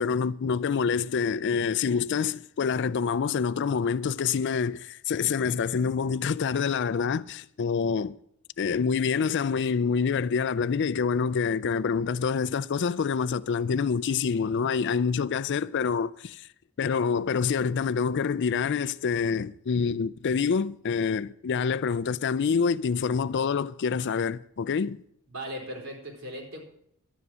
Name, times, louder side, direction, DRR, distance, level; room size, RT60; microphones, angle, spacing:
voice 1, 0.0-8.2 8.6-16.5 16.8-25.0, left 6 dB, 55° left, 0.4 m, -26 dB
voice 2, 25.3-26.6, equal, 65° right, 4.1 m, -38 dB
12.0 x 9.7 x 6.2 m
head